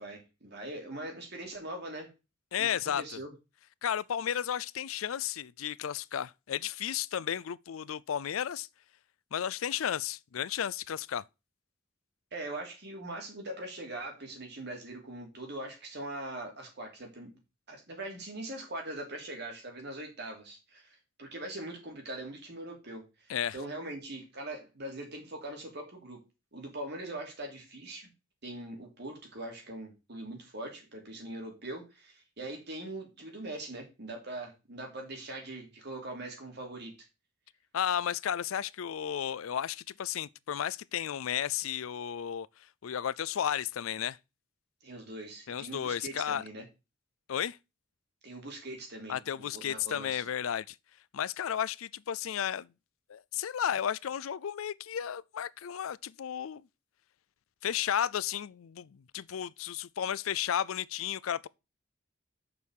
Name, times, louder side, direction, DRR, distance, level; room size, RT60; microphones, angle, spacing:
voice 1, 0.0-2.1 2.6-2.7 3.0-3.3 12.3-17.3 17.7-26.2 26.5-28.1 28.4-36.9 44.8-46.6 48.2-50.2, right 1 dB, 55° right, 3.3 m, -42 dB
voice 2, 2.5-3.2 3.8-8.7 9.3-11.2 23.3-23.6 37.7-42.5 42.8-44.2 45.5-46.4 47.3-47.6 49.1-50.8 51.1-52.7 53.1-56.6 57.6-61.5, left 9 dB, 90° left, 0.4 m, -33 dB
6.8 x 5.4 x 6.4 m
head